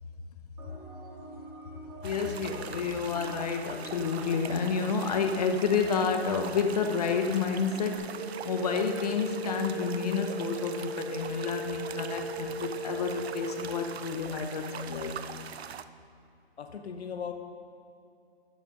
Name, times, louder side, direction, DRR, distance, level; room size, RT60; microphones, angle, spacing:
sound 1, 0.6-8.0, right 2 dB, 10° right, 0.7 m, -47 dB
voice 1, 2.0-8.1 8.4-15.1, left 6 dB, 35° left, 5 dB, 0.8 m, -30 dB
sound 2, 2.0-15.8, right 7 dB, 70° right, 0.6 m, -42 dB
sound 3, 8.2-13.7, right 2 dB, 30° right, 1.3 m, -37 dB
voice 2, 16.6-17.3, left 7 dB, 75° left, 6 dB, 1.0 m, -37 dB
12.5 x 6.7 x 5.2 m, 2.5 s
hypercardioid pair, 155°, 32 cm